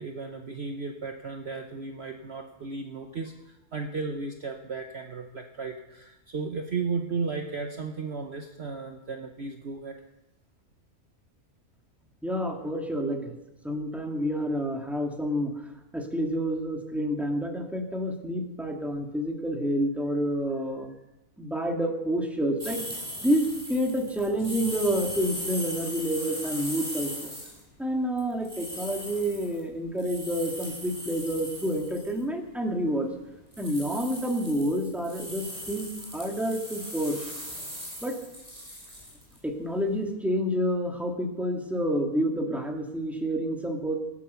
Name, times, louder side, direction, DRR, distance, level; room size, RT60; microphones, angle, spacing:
voice 1, 0.0-10.0, right 4 dB, 50° right, 4 dB, 1.2 m, -35 dB
voice 2, 12.2-13.3 13.6-15.7 15.9-20.9 21.4-22.8 23.2-27.3 27.8-33.1 33.6-37.3 38.0-38.2 39.4-44.0, equal, ahead, 1 dB, 2.0 m, -29 dB
sound 1, 22.6-27.6 28.2-32.2 33.5-39.4, equal, 25° right, 6.0 m, -39 dB
17.5 x 10.5 x 6.9 m, 0.97 s
omnidirectional pair, 1.5 m